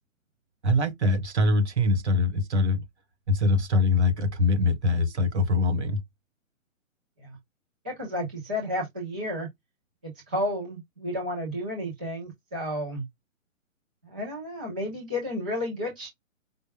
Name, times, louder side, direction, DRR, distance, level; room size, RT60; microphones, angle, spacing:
voice 1, 0.6-2.8 3.3-6.0, left 2 dB, 55° right, 1.7 m, -23 dB
voice 2, 7.8-9.5 10.0-13.1 14.0-16.1, left 1 dB, 5° right, 0.4 m, -32 dB
5.0 x 2.2 x 3.3 m
figure-of-eight pair, 130°, 40 cm